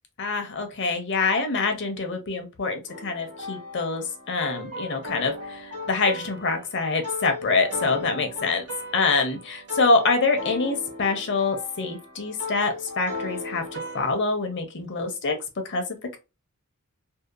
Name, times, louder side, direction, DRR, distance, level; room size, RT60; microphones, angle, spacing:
voice 1, 0.2-8.6 8.9-15.4 15.6-15.8, left 3 dB, 55° left, 0.7 m, -25 dB
sound 1, 2.9-14.1, left 2 dB, 85° right, 1.1 m, -37 dB
2.7 x 2.1 x 2.3 m
head